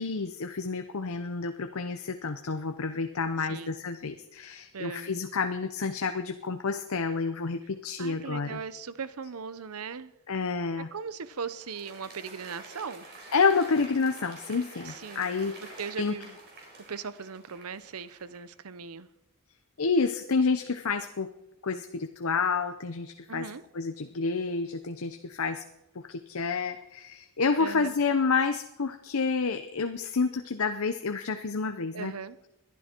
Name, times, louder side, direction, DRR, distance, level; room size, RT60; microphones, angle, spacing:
voice 1, 0.0-8.6 10.3-10.9 13.3-16.1 19.8-21.3 21.6-23.5 23.7-25.6 25.9-32.1, left 4 dB, 75° left, 8 dB, 0.8 m, -29 dB
voice 2, 4.7-5.1 8.0-10.1 10.9-13.1 14.9-15.3 15.8-16.4 16.9-19.1 23.3-23.6 27.6-28.0 31.9-32.4, right 5 dB, 80° right, 15 dB, 0.8 m, -38 dB
Applause, 10.9-18.6, right 2 dB, 50° right, 4.3 m, -49 dB
21.0 x 11.5 x 4.5 m, 0.96 s
head